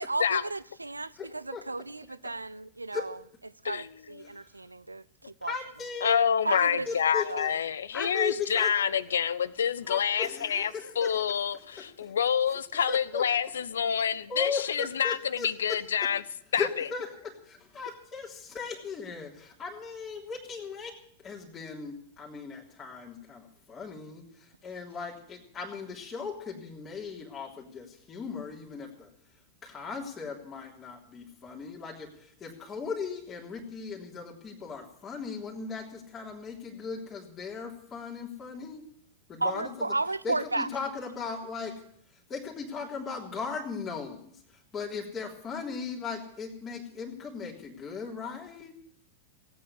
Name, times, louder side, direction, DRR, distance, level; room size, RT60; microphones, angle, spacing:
voice 1, 0.0-3.2 3.6-5.5 6.4-7.6 39.4-40.7, right 2 dB, 90° right, 0.5 m, -34 dB
voice 2, 1.2-1.6 2.2-2.3 2.9-3.1 4.2-4.3 5.4-6.2 6.5-7.5 7.9-8.7 9.9-11.2 11.8-12.1 12.9-13.2 14.3-15.8 16.5-20.9 21.2-29.1 29.6-38.8 39.3-39.7 40.2-41.7 42.3-44.3 44.7-48.7, left 5 dB, 25° left, 3.3 m, -37 dB
voice 3, 6.0-10.7 11.0-16.2 16.5-16.9, left 8 dB, 70° left, 0.7 m, -27 dB
17.0 x 9.2 x 8.2 m
figure-of-eight pair, 95°, 0 cm